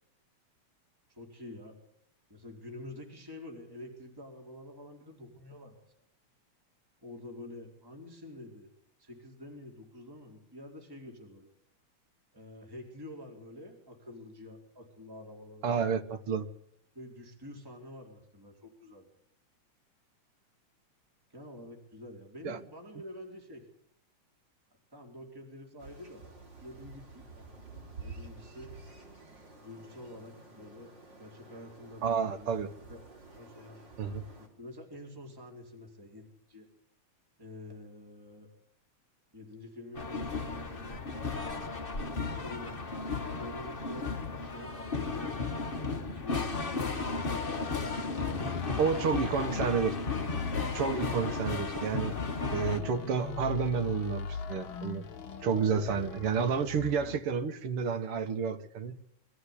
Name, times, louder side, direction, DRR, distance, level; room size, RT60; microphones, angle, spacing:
voice 1, 1.1-1.8 2.3-5.8 7.0-8.7 9.0-11.5 12.3-15.9 16.9-19.1 21.3-23.7 24.9-26.3 26.6-27.5 28.0-28.7 29.6-32.5 32.9-33.0 33.3-33.8 34.4-36.7 37.4-38.5 39.3-41.0 42.3-42.9 43.1-44.1 44.4-45.7 46.1-49.3, left 1 dB, 5° right, 4.2 m, -48 dB
voice 2, 15.6-16.5 22.4-22.6 32.0-32.7 34.0-34.2 48.8-50.0 50.7-52.2 52.5-55.0 55.4-59.1, right 6 dB, 55° right, 2.1 m, -30 dB
sound 1, 25.8-34.5, right 3 dB, 35° right, 4.7 m, -50 dB
sound 2, 39.9-52.8, left 4 dB, 30° left, 1.1 m, -34 dB
sound 3, 46.5-57.3, left 5 dB, 50° left, 2.1 m, -40 dB
24.0 x 14.5 x 9.9 m
omnidirectional pair, 3.3 m